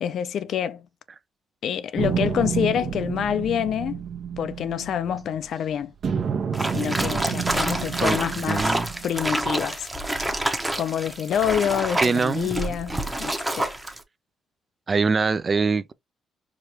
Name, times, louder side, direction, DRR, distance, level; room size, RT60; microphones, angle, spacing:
voice 1, 0.0-0.9 1.6-4.0 4.4-5.9 6.7-8.8 9.0-9.9 10.7-13.7, left 9 dB, 70° left, 0.4 m, -27 dB
sound 1, 2.0-5.5 6.0-9.4, right 7 dB, 55° right, 0.9 m, -29 dB
sound 2, 6.5-14.0, right 1 dB, 10° right, 0.8 m, -28 dB
voice 2, 8.5-8.9 12.0-12.5 14.9-15.9, right 4 dB, 35° right, 0.4 m, -23 dB
4.8 x 2.4 x 2.9 m
cardioid pair, 90°, 0 cm